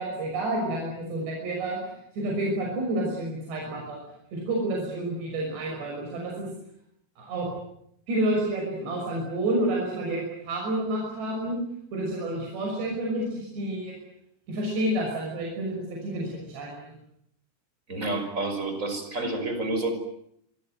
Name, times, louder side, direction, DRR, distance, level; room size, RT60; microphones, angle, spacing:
voice 1, 0.0-1.8 2.1-4.0 4.3-6.5 7.2-7.5 8.1-11.6 11.9-13.9 14.5-16.9, right 1 dB, 85° right, -1 dB, 8.3 m, -29 dB
voice 2, 17.9-19.9, right 2 dB, 20° right, 7 dB, 5.6 m, -29 dB
26.5 x 25.5 x 8.0 m, 0.73 s
omnidirectional pair, 4.8 m